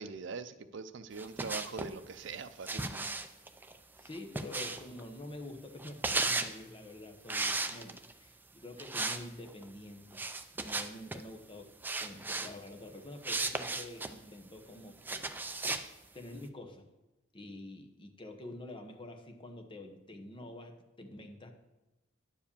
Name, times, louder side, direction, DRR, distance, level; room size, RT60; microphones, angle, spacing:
voice 1, 0.0-3.1, right 5 dB, 65° right, 10 dB, 0.5 m, -42 dB
sound 1, 1.2-1.9 2.7-5.0 5.8-6.5 7.3-8.1 8.8-9.2 9.5-9.6 10.1-11.2 11.8-12.5 13.2-14.1 15.0-15.9, right 3 dB, 10° right, 0.4 m, -35 dB
voice 2, 4.0-10.2 10.5-11.7 12.0-15.3 16.1-16.9 17.3-21.5, left 1 dB, 25° left, 5 dB, 1.0 m, -47 dB
10.0 x 4.9 x 7.0 m, 1.0 s
head